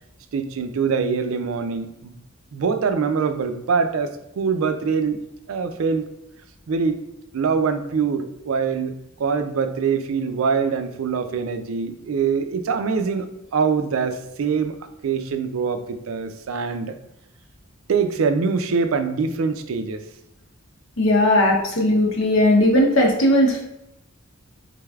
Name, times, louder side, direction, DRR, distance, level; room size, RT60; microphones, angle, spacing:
voice 1, 0.3-2.1 2.5-5.2 5.5-6.1 6.7-7.0 7.3-13.3 13.5-14.7 15.0-17.0 17.9-20.0, right 5 dB, 85° right, 8 dB, 0.4 m, -24 dB
voice 2, 21.0-23.6, left 1 dB, 75° left, 0 dB, 0.9 m, -17 dB
4.0 x 3.2 x 2.3 m, 0.87 s
head